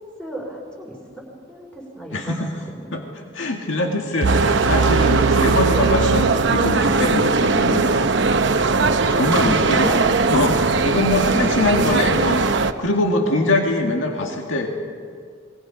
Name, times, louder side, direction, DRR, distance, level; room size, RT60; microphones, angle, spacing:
voice 1, 0.2-0.9 1.5-2.4 2.7-2.9 9.2-10.0, right 1 dB, 5° left, -2 dB, 4.7 m, -33 dB
voice 2, 2.1-2.5 2.9-8.0 9.1-9.9 10.3-14.7, left 2 dB, 70° left, 2 dB, 2.0 m, -23 dB
sound 1, 4.2-12.7, right 3 dB, 60° right, 0.8 m, -19 dB
sound 2, 4.2-7.3, right 5 dB, 85° right, 0.6 m, -22 dB
28.5 x 22.0 x 5.2 m, 2.1 s
head